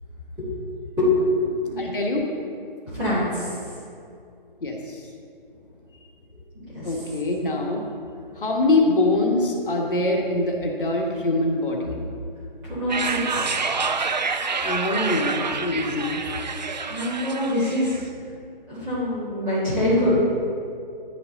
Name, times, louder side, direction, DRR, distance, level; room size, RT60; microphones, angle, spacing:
voice 1, 1.0-2.2 2.9-3.6 6.7-7.1 12.7-13.8 16.9-18.1 18.7-20.1, left 1 dB, 5° right, -14 dB, 1.6 m, -25 dB
voice 2, 1.8-2.3 4.6-5.0 6.8-7.8 8.4-11.9 14.6-16.2, left 2 dB, 60° left, 0 dB, 1.3 m, -24 dB
sound 1, 12.9-18.0, right 4 dB, 50° right, 0.4 m, -27 dB
10.5 x 5.9 x 3.8 m, 2.4 s
hypercardioid pair, 175°, 29 cm